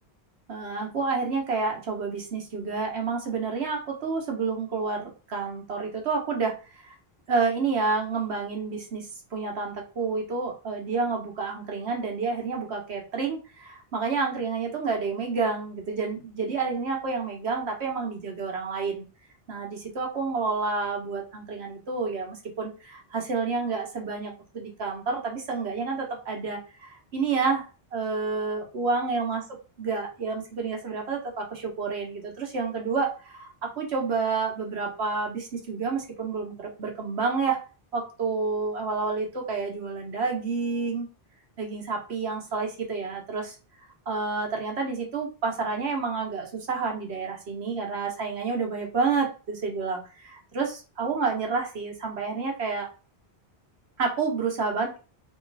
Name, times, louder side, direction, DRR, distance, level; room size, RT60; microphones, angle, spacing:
voice 1, 0.5-6.9 7.3-19.0 19.5-27.6 27.9-37.6 37.9-41.1 41.6-43.5 44.1-52.9 54.0-55.0, right 4 dB, 85° right, 1 dB, 1.3 m, -29 dB
3.1 x 3.0 x 3.9 m, 0.33 s
omnidirectional pair, 1.1 m